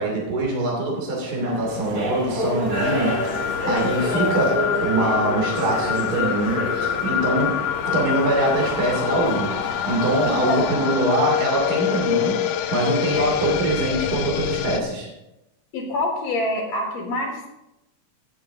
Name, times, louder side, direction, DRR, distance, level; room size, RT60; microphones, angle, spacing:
voice 1, 0.0-7.6 7.9-15.1, right 1 dB, 30° right, -2 dB, 3.0 m, -23 dB
sound 1, 1.2-10.7, equal, 55° right, 5.4 m, -29 dB
sound 2, 2.7-14.8, left 10 dB, 75° left, 2.0 m, -26 dB
voice 2, 15.7-17.5, left 1 dB, 55° left, -1 dB, 2.8 m, -26 dB
17.5 x 7.1 x 3.8 m, 0.90 s
omnidirectional pair, 3.9 m